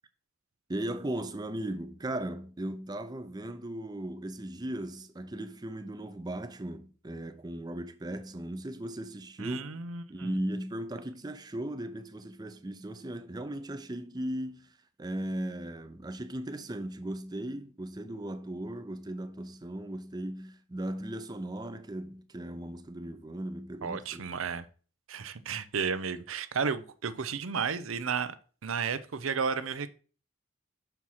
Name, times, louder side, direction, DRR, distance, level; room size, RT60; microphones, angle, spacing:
voice 1, 0.7-9.8 10.1-24.3, right 1 dB, 20° right, 0.5 m, -37 dB
voice 2, 9.4-10.3 23.8-24.6 25.1-28.4 28.6-29.9, right 6 dB, 90° right, 0.6 m, -33 dB
6.1 x 4.5 x 5.6 m
head